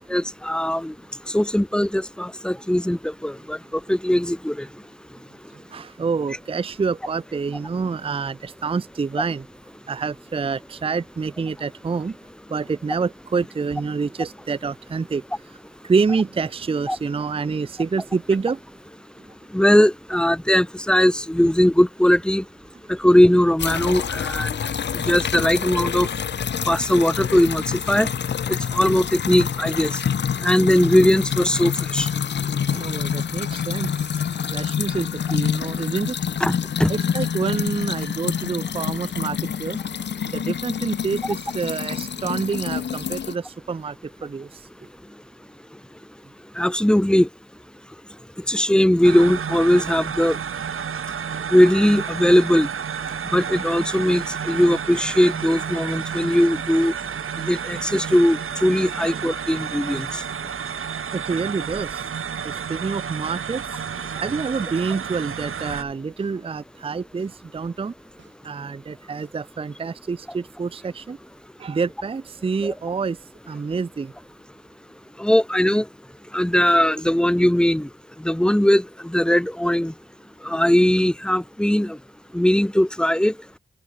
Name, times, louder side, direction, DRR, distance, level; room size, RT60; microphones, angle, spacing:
voice 1, 0.1-0.9 1.3-3.6 3.9-4.7 16.9-17.0 19.5-22.4 22.9-24.5 24.9-26.1 26.7-28.1 28.5-29.9 30.4-32.1 36.4-36.9 46.6-47.3 48.5-50.4 51.5-52.7 53.3-56.9 57.4-60.1 72.6-72.7 75.2-75.8 76.3-77.9 78.2-79.9 80.4-82.0 82.3-83.3, left 1 dB, 5° left, 1.5 m, -19 dB
voice 2, 5.5-9.5 9.9-12.2 12.5-15.2 15.8-18.6 29.3-29.4 32.7-36.2 36.9-39.8 40.3-44.0 44.2-44.6 59.1-59.2 61.1-62.0 62.4-63.6 64.2-67.9 68.4-71.2 71.6-73.2 73.5-74.1, right 5 dB, 25° right, 0.5 m, -27 dB
sound 1, 23.6-43.3, left 7 dB, 55° left, 0.6 m, -27 dB
sound 2, 49.0-65.8, right 7 dB, 80° right, 3.5 m, -31 dB
sound 3, 60.2-60.5 61.2-62.5 63.2-63.5 64.2-64.5 65.2-66.5 67.2-67.5 68.2-68.5 69.2-69.5, right 5 dB, 60° right, 7.4 m, -50 dB
cardioid pair, 80°, 21 cm